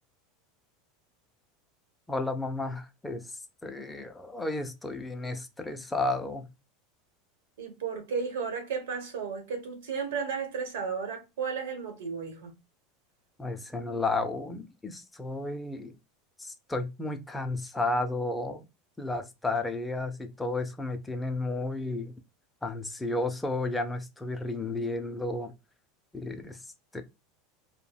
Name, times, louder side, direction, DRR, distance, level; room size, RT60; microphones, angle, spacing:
voice 1, 2.1-3.3 3.6-6.5 13.4-15.9 16.4-18.7 19.0-22.1 22.6-25.5 26.1-26.6 26.9-27.0, left 2 dB, 10° left, 0.4 m, -32 dB
voice 2, 7.6-12.6, right 5 dB, 90° right, 1.0 m, -34 dB
2.2 x 2.1 x 3.3 m
supercardioid pair, 125°, 0 cm